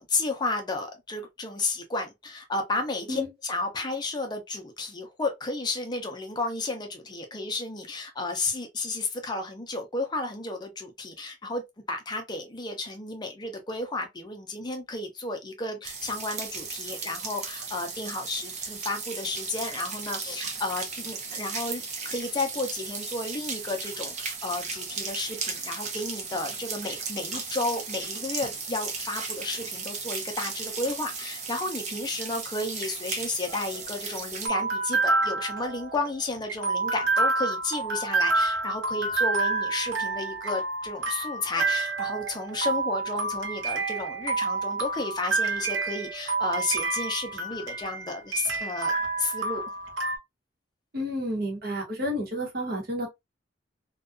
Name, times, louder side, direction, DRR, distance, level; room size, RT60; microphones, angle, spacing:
voice 1, 0.0-11.6 11.9-49.6, left 2 dB, 25° left, 0.5 m, -32 dB
sound 1, 15.8-34.5, right 5 dB, 40° right, 0.5 m, -36 dB
sound 2, 33.5-50.2, right 3 dB, 80° right, 0.7 m, -28 dB
voice 2, 50.9-53.1, equal, 55° right, 1.0 m, -30 dB
2.5 x 2.2 x 2.4 m
head